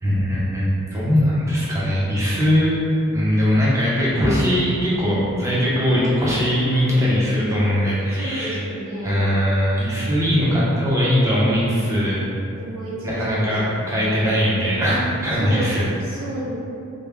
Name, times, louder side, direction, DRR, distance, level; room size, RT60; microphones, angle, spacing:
voice 1, 0.0-2.7 3.1-8.6 9.0-12.2 13.0-15.9, equal, 15° right, -8 dB, 0.6 m, -20 dB
voice 2, 8.1-9.3 10.0-10.4 11.2-11.8 12.6-15.0 15.4-15.7 16.0-16.5, right 1 dB, 80° right, -7 dB, 0.8 m, -33 dB
3.4 x 2.1 x 3.4 m, 2.6 s
head